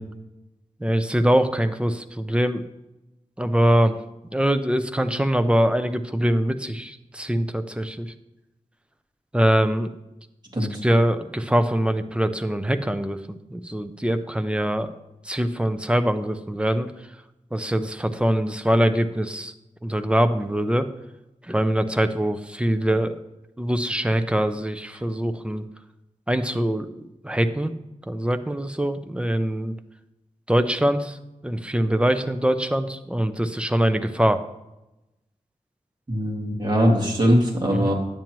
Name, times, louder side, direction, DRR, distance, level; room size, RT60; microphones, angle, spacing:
voice 1, 0.8-2.6 3.4-4.0 4.3-8.1 9.3-9.9 10.6-13.2 13.5-14.9 15.2-16.9 17.5-19.5 19.8-20.9 21.4-23.2 23.6-25.6 26.3-26.9 27.2-27.7 28.1-29.7 30.5-31.2 31.4-34.4 37.7-37.9, right 1 dB, 10° right, 9 dB, 0.6 m, -23 dB
voice 2, 36.1-37.9, equal, 35° right, -2 dB, 2.4 m, -21 dB
10.5 x 8.9 x 3.1 m, 0.93 s
wide cardioid pair, 95°, 13 cm